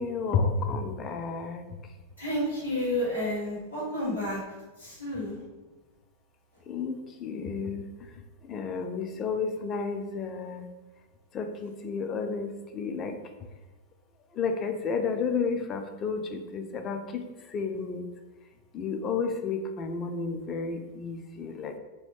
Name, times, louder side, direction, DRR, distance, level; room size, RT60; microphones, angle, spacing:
voice 1, 0.0-1.6 6.7-7.9 8.4-10.7 11.3-13.2 14.3-17.3 17.5-18.1 18.7-21.7, left 5 dB, 30° left, 6 dB, 0.3 m, -31 dB
voice 2, 2.2-4.4 4.8-5.4, left 1 dB, 90° left, -8 dB, 1.4 m, -30 dB
2.7 x 2.5 x 3.4 m, 1.1 s
figure-of-eight pair, 90°, 0 cm